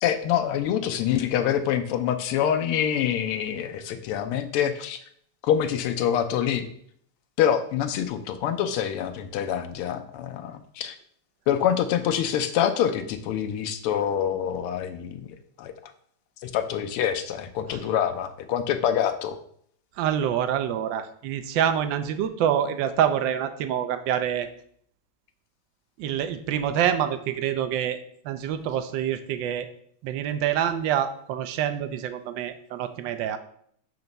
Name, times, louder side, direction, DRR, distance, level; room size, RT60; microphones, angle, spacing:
voice 1, 0.0-5.0 5.4-6.7 7.4-11.0 11.5-15.7 16.4-19.4, left 9 dB, 85° left, 7 dB, 1.6 m, -26 dB
voice 2, 20.0-24.5 26.0-28.0 28.2-29.7 30.0-33.4, right 9 dB, 75° right, 9 dB, 1.1 m, -26 dB
7.9 x 3.0 x 5.3 m, 0.64 s
omnidirectional pair, 2.4 m